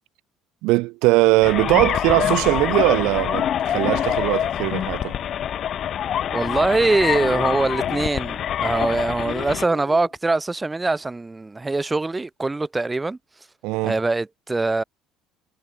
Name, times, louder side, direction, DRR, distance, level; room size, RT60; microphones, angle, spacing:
voice 1, 0.6-5.2 13.6-14.0, right 23 dB, 80° right, 1.2 m, -20 dB
sound 1, 1.4-9.7, left 10 dB, 50° left, 0.9 m, -25 dB
voice 2, 6.3-13.2 13.8-14.8, right 3 dB, 15° right, 1.1 m, -23 dB
sound 2, 7.2-8.1 9.2-10.1, left 17 dB, 70° left, 1.7 m, -38 dB
supercardioid pair, 90°, 0 cm